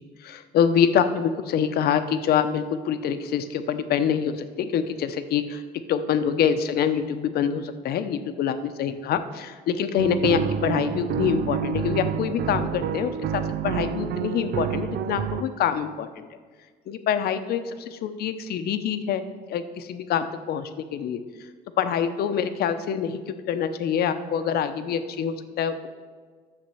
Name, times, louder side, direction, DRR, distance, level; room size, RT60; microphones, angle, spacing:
voice 1, 0.2-5.6 5.9-16.3 16.9-19.2 19.5-21.2 21.8-25.9, left 8 dB, 65° left, 10 dB, 0.9 m, -25 dB
sound 1, 10.0-15.4, right 8 dB, 70° right, 0.6 m, -28 dB
10.5 x 6.9 x 6.9 m, 1.5 s
cardioid pair, 110°, 17 cm